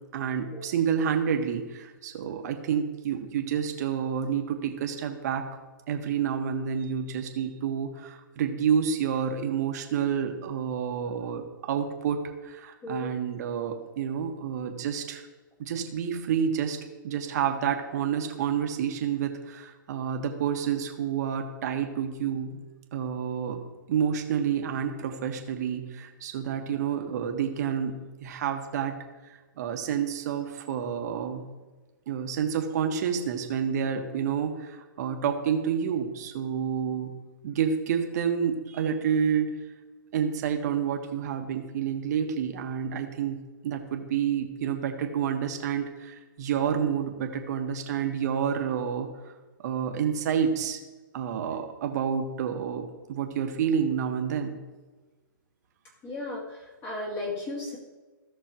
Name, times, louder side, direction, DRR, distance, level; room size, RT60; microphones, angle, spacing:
voice 1, 0.1-5.5 5.9-15.2 15.6-16.8 17.0-22.6 22.9-23.6 23.9-29.0 29.6-31.5 32.1-37.1 37.4-39.5 40.1-49.1 49.6-50.8 51.1-54.6, right 7 dB, 50° right, 4 dB, 1.4 m, -29 dB
voice 2, 56.0-57.8, left 2 dB, 20° left, -3 dB, 2.0 m, -35 dB
16.5 x 6.2 x 3.0 m, 1.3 s
hypercardioid pair, 140°, 11 cm